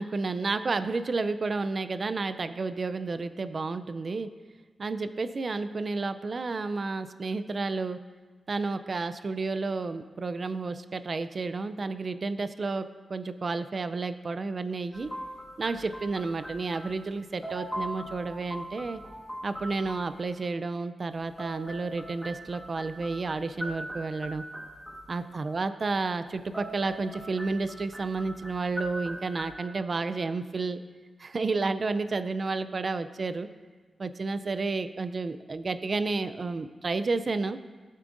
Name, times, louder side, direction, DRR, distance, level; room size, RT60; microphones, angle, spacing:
voice 1, 0.0-4.3 4.8-8.0 8.5-15.1 15.6-19.0 19.4-24.4 25.1-30.8 31.2-33.5 34.0-37.6, right 3 dB, 45° right, 11 dB, 0.4 m, -31 dB
sound 1, 14.9-17.2 17.4-20.1 21.2-25.4 26.3-29.5, right 1 dB, ahead, 1.3 m, -41 dB
15.5 x 8.2 x 2.5 m, 1.4 s
wide cardioid pair, 95°, 0 cm